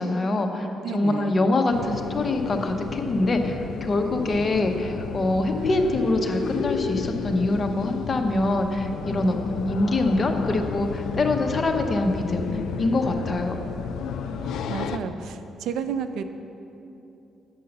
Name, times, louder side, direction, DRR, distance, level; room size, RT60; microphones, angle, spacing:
voice 1, 0.0-12.5 12.8-13.6, left 2 dB, 35° left, 5 dB, 0.8 m, -24 dB
voice 2, 0.8-1.3 9.2-9.4 14.3-16.2, right 6 dB, 80° right, 10 dB, 0.4 m, -32 dB
sound 1, 1.7-15.0, left 6 dB, 75° left, 0.4 m, -32 dB
7.8 x 5.5 x 6.6 m, 2.9 s
cardioid pair, 100°, 0 cm